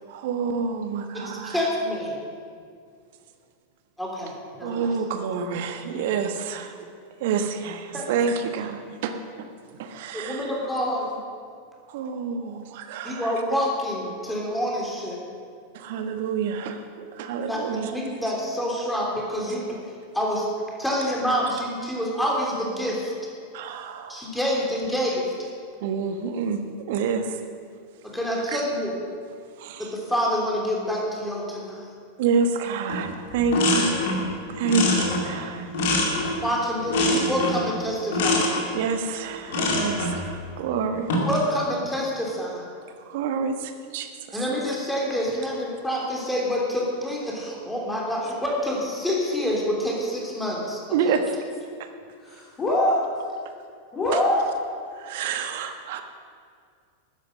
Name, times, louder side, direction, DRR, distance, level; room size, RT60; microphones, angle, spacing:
voice 1, 0.1-1.7 4.6-6.8 7.2-9.5 9.8-10.6 11.9-13.4 15.7-17.9 23.5-24.3 25.8-26.6 26.9-27.4 28.5-28.6 29.6-29.9 32.2-34.1 34.5-35.7 38.7-41.1 43.1-44.1 50.9-51.2 54.1-54.2 55.0-56.0, right 5 dB, 50° right, 7 dB, 1.2 m, -28 dB
voice 2, 1.1-2.2 4.0-4.3 4.6-4.9 5.4-5.5 7.9-8.1 10.1-11.2 13.0-15.2 17.5-19.6 20.1-20.5 20.8-23.1 24.1-25.3 28.0-28.9 29.8-31.9 36.4-38.6 41.2-42.6 44.3-50.8, equal, 5° left, -3 dB, 3.3 m, -27 dB
sound 1, 32.9-33.1 33.3-34.3 34.6-36.5 36.9-37.7 38.1-38.6 39.5-40.2 40.9-41.4, left 1 dB, 55° left, 2.4 m, -24 dB
voice 3, 52.2-53.0 53.9-54.4, left 1 dB, 20° left, -6 dB, 2.5 m, -22 dB
13.5 x 10.0 x 6.4 m, 2.2 s
figure-of-eight pair, 90°, 0 cm